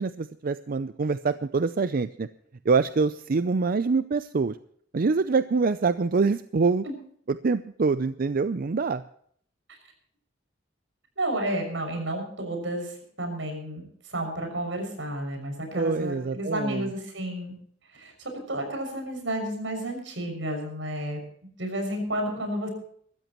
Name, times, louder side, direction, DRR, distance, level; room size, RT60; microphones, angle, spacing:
voice 1, 0.0-2.3 2.6-4.6 4.9-6.9 7.3-9.0 15.7-16.9, right 4 dB, 50° right, 13 dB, 0.5 m, -25 dB
voice 2, 11.2-12.9 13.2-13.8 14.1-17.5 17.9-21.2 21.6-22.7, right 1 dB, 80° right, 4 dB, 6.4 m, -31 dB
24.0 x 13.5 x 3.0 m, 0.62 s
head